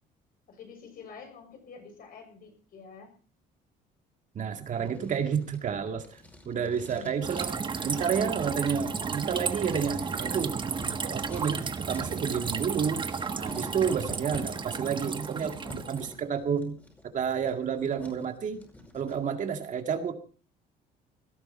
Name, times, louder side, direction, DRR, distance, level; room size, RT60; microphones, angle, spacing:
voice 1, 0.5-3.1 6.5-7.3 13.6-14.2, left 4 dB, 60° left, 4 dB, 6.9 m, -49 dB
voice 2, 4.3-6.0 6.5-7.5 7.8-10.6 11.0-13.1 13.4-16.8 17.1-18.6 18.9-20.1, right 7 dB, 50° right, 6 dB, 2.1 m, -30 dB
Writing, 4.8-19.2, left 1 dB, 10° left, 5.2 m, -48 dB
sound 1, 7.2-16.1, right 5 dB, 30° right, 1.3 m, -33 dB
18.0 x 13.5 x 4.5 m, 0.41 s
cardioid pair, 110°, 17 cm